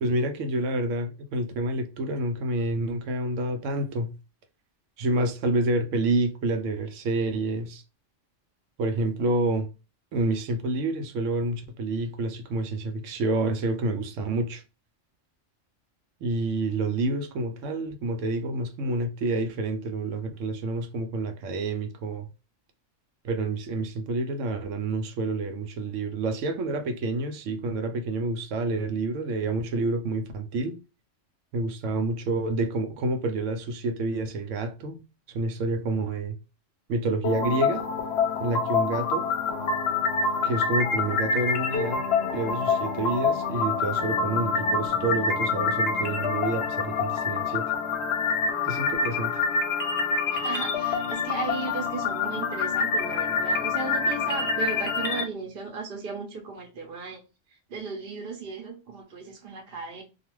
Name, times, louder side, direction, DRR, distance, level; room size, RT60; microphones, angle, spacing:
voice 1, 0.0-4.1 5.0-7.8 8.8-9.7 10.1-14.6 16.2-22.3 23.2-30.8 31.5-35.0 35.3-36.4 36.9-37.9 38.4-39.3 40.4-42.0 42.3-47.7 48.7-49.4, right 2 dB, 85° right, 0.9 m, -28 dB
sound 1, 37.2-55.2, left 5 dB, 65° left, 0.8 m, -26 dB
voice 2, 50.3-57.2 57.7-60.0, right 4 dB, 55° right, 0.9 m, -36 dB
2.4 x 2.3 x 3.0 m
omnidirectional pair, 1.3 m